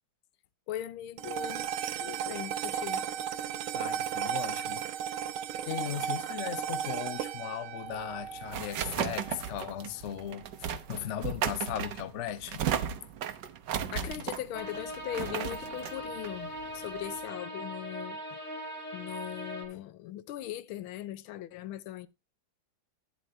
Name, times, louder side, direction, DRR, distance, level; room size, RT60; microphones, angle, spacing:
voice 1, 0.7-1.7 2.0-3.0 13.9-18.2 18.9-22.1, left 12 dB, 85° left, 1.5 m, -39 dB
sound 1, 1.2-9.7, right 9 dB, 85° right, 1.6 m, -35 dB
voice 2, 3.7-4.8 5.7-12.6, left 11 dB, 60° left, 0.7 m, -37 dB
sound 2, 7.9-17.2, right 9 dB, 65° right, 1.4 m, -36 dB
sound 3, 14.5-19.6, equal, 40° left, 3.3 m, -40 dB
11.0 x 10.5 x 2.7 m
omnidirectional pair, 2.2 m